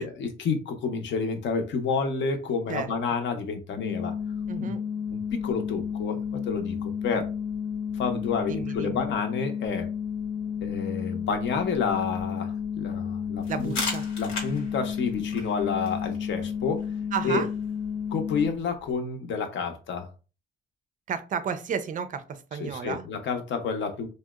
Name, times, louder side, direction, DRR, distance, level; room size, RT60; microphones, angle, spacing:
voice 1, 0.0-4.2 4.6-4.7 5.1-7.3 7.9-9.9 10.6-13.8 14.2-16.8 17.2-17.4 18.1-20.1 22.6-24.1, left 5 dB, 65° left, 0.6 m, -29 dB
sound 1, 3.8-18.5, left 7 dB, 20° left, 0.4 m, -32 dB
voice 2, 4.5-4.8 8.5-9.0 13.5-14.1 17.1-17.5 21.1-23.1, right 7 dB, 40° right, 0.4 m, -32 dB
sound 2, 13.4-18.9, left 3 dB, 90° left, 0.9 m, -39 dB
2.8 x 2.0 x 2.2 m
cardioid pair, 90°, 20 cm